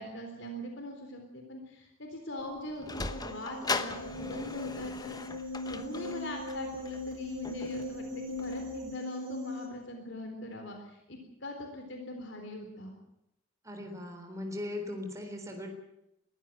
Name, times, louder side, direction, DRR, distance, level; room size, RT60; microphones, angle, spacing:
voice 1, 0.0-5.2 5.7-12.9, left 1 dB, 60° left, 3 dB, 3.8 m, -42 dB
Sliding door, 2.4-9.0, left 3 dB, 20° left, 1.1 m, -40 dB
sound 1, 2.9-9.7, left 2 dB, 60° right, 5.6 m, -39 dB
voice 2, 13.6-15.7, left 1 dB, 15° right, 3 dB, 3.8 m, -39 dB
22.0 x 15.5 x 9.1 m, 0.83 s
head